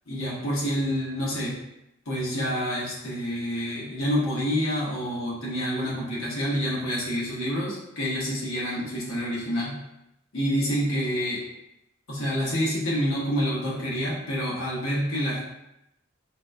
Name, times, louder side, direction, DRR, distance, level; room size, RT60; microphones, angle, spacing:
voice 1, 0.1-1.6 2.1-9.8 10.3-11.4 12.1-15.4, equal, 75° left, -6 dB, 1.1 m, -28 dB
4.0 x 2.2 x 2.5 m, 0.86 s
head